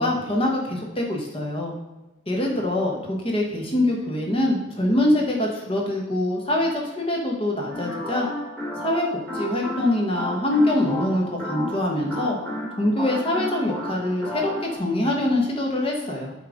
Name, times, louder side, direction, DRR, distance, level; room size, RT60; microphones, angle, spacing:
voice 1, 0.0-1.7 2.3-8.3 8.8-9.1 9.3-12.4 12.8-16.3, left 1 dB, 30° left, 0 dB, 1.2 m, -24 dB
sound 1, 7.7-14.7, left 1 dB, 10° left, 2.0 m, -33 dB
7.2 x 3.6 x 5.1 m, 1.1 s
head